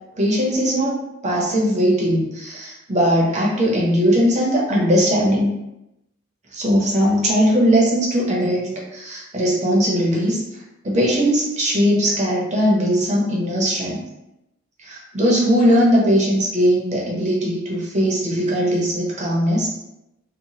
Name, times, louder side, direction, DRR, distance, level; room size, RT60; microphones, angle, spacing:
voice 1, 0.2-1.0 1.2-5.5 6.5-10.4 10.8-14.0 14.8-19.7, equal, 35° right, -3 dB, 0.7 m, -19 dB
2.9 x 2.1 x 2.8 m, 0.89 s
head